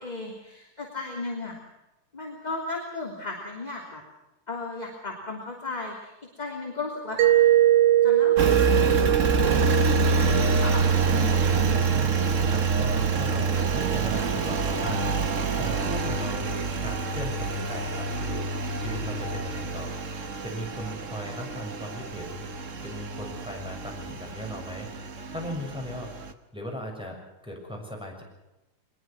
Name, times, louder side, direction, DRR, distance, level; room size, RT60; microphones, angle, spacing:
voice 1, 0.0-1.5 2.1-4.0 4.5-6.1 6.4-7.5 8.0-10.8 11.1-11.8, left 3 dB, 15° left, 0 dB, 3.0 m, -36 dB
Mallet percussion, 7.2-11.8, right 13 dB, 90° right, 2.6 m, -22 dB
Engine, 8.4-26.3, right 4 dB, 55° right, 0.8 m, -26 dB
voice 2, 11.4-15.0 15.6-16.5 16.8-18.4 18.8-19.9 20.4-22.4 22.8-24.9 25.3-26.1 26.5-28.2, equal, ahead, -1 dB, 6.6 m, -38 dB
24.0 x 21.0 x 6.2 m, 0.98 s
omnidirectional pair, 3.4 m